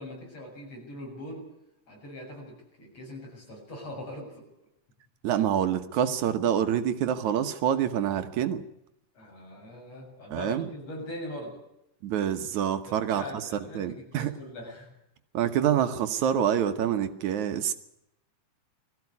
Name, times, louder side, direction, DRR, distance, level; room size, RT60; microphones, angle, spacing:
voice 1, 0.0-1.5 1.9-4.5 9.1-11.6 12.9-14.9, left 1 dB, 55° left, 0 dB, 8.3 m, -41 dB
voice 2, 5.2-8.6 10.3-10.7 12.0-13.5 13.7-14.3 15.3-17.7, right 9 dB, 75° right, 9 dB, 2.5 m, -26 dB
21.5 x 14.5 x 9.6 m, 0.83 s
omnidirectional pair, 3.5 m